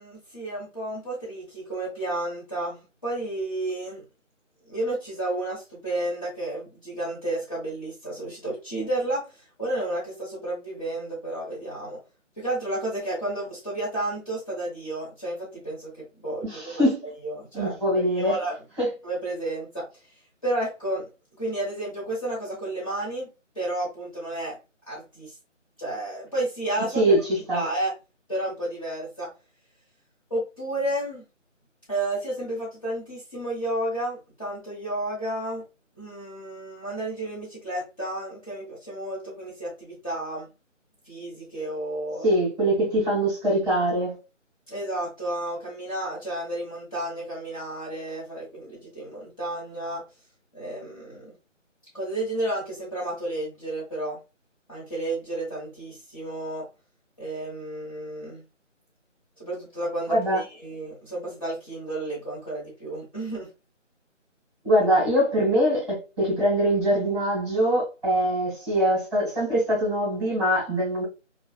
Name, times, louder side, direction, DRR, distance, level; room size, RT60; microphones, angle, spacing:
voice 1, 0.0-4.0 4.7-12.0 12.4-16.8 17.2-18.6 19.0-19.9 20.4-21.1 21.4-23.3 23.5-24.6 24.9-25.3 25.8-27.2 27.5-27.9 28.3-29.3 30.3-31.2 31.9-35.6 36.0-40.5 41.1-42.2 44.7-50.0 50.5-51.3 51.9-54.2 54.7-56.7 57.2-58.4 59.4-63.5, right 1 dB, 25° left, 1.0 m, -31 dB
voice 2, 16.4-17.0 17.5-18.4 18.8-18.9 26.9-27.6 42.2-44.2 60.1-60.4 64.6-71.0, right 1 dB, 20° right, 1.3 m, -23 dB
2.9 x 2.3 x 2.2 m
figure-of-eight pair, 160°, 38 cm